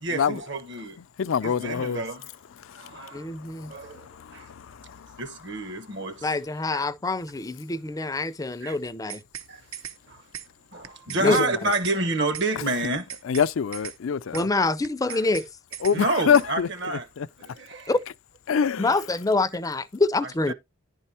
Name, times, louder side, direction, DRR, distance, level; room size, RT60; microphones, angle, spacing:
voice 1, 0.0-1.0 1.4-2.3 2.7-3.3 3.7-4.5 5.2-6.3 6.7-6.8 8.6-8.8 9.5-9.6 10.1-10.2 10.7-13.1 15.1-15.3 15.9-17.1 17.4-17.9 20.2-20.5, right 2 dB, 60° right, 1.3 m, -29 dB
voice 2, 1.2-2.0 11.2-11.3 13.3-14.5 15.8-16.7 17.2-17.3 18.5-18.9, left 7 dB, 75° left, 0.4 m, -23 dB
voice 3, 3.1-3.7 6.2-9.2 11.1-11.6 14.3-15.5 17.9-18.0 18.8-20.5, left 2 dB, 15° left, 0.4 m, -26 dB
sound 1, 8.8-9.5 9.7-10.0 10.3-10.5 10.8-11.5 11.7-12.0 12.3-12.5 12.8-13.5 13.7-14.0 14.3-14.5 14.8-15.5 15.7-16.0 16.3-16.5, right 9 dB, 80° right, 0.9 m, -38 dB
10.5 x 4.4 x 4.3 m
head